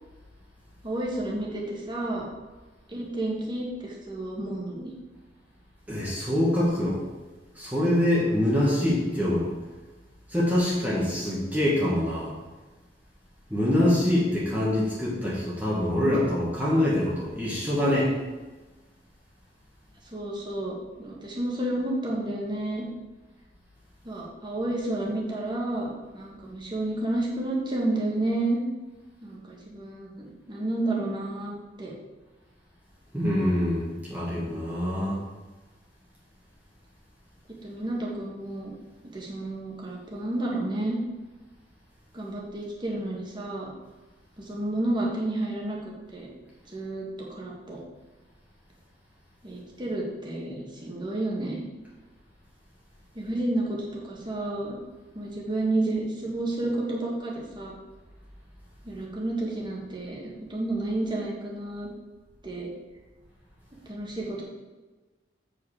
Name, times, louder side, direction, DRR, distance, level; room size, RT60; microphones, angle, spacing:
voice 1, 0.8-2.3 2.9-4.9 20.1-22.9 24.0-28.6 29.2-31.5 31.8-31.9 37.6-38.7 39.0-41.0 42.1-43.7 44.4-46.3 46.7-47.8 49.4-51.6 53.1-54.8 55.1-57.8 58.8-61.9 62.4-62.7 63.8-64.4, right 1 dB, 25° right, -3 dB, 1.7 m, -31 dB
voice 2, 5.9-7.0 7.5-9.5 10.3-12.3 13.5-18.1 33.1-35.2, left 1 dB, 10° right, -7 dB, 1.6 m, -25 dB
8.1 x 5.2 x 4.9 m, 1.2 s
head